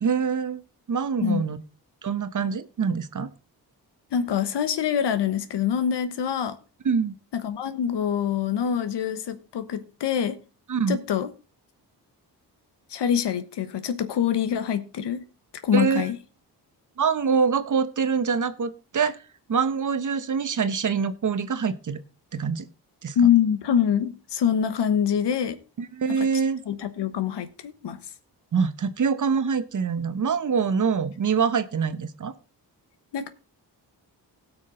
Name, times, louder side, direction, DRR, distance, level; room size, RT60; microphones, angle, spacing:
voice 1, 0.0-0.6 0.9-1.6 2.0-3.3 6.8-7.1 10.7-11.0 15.7-16.1 17.0-19.2 19.5-22.0 22.3-22.7 23.0-23.3 25.8-26.6 28.5-32.3, right 6 dB, 50° right, 12 dB, 1.0 m, -25 dB
voice 2, 4.1-6.6 7.3-10.4 10.9-11.3 12.9-15.2 15.6-16.2 23.1-25.6 26.2-26.3 26.7-28.0 33.1-33.3, left 9 dB, 80° left, 11 dB, 1.2 m, -25 dB
17.5 x 6.2 x 3.8 m, 0.32 s
cardioid pair, 75°, 41 cm